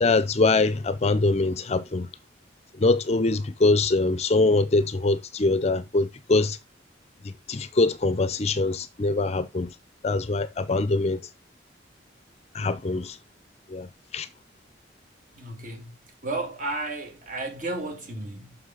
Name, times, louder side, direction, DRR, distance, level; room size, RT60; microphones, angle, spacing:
voice 1, 0.0-2.1 2.8-6.6 7.2-9.7 10.0-11.2 12.5-13.2 13.7-14.3, left 3 dB, 35° left, 0.5 m, -23 dB
voice 2, 15.3-16.0 16.2-18.6, right 2 dB, 45° right, 1.9 m, -33 dB
6.5 x 5.9 x 3.8 m
head